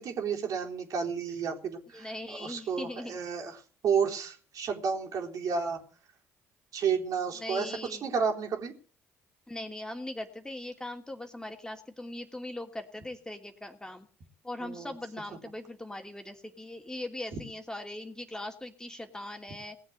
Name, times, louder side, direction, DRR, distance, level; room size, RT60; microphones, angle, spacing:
voice 1, 0.0-3.6 3.8-5.8 6.7-7.7 8.0-8.7 14.6-14.9, right 6 dB, 60° right, 1 dB, 3.9 m, -31 dB
voice 2, 1.9-3.2 7.4-8.1 9.5-14.1 14.4-19.8, left 1 dB, 10° left, 5 dB, 2.8 m, -40 dB
19.0 x 7.5 x 8.3 m, 0.42 s
hypercardioid pair, 60°, 7 cm